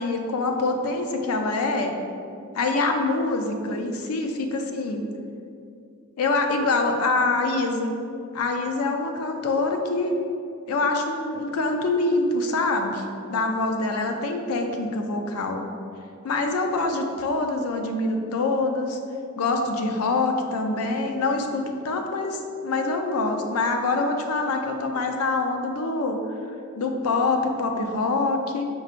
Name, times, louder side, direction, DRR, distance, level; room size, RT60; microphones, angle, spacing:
voice 1, 0.0-1.9 2.5-5.1 6.2-8.0 8.3-10.2 10.7-15.6 16.2-19.0 19.4-26.2 26.8-28.7, left 3 dB, 80° left, 4 dB, 0.5 m, -25 dB
4.6 x 4.5 x 2.5 m, 2.4 s
head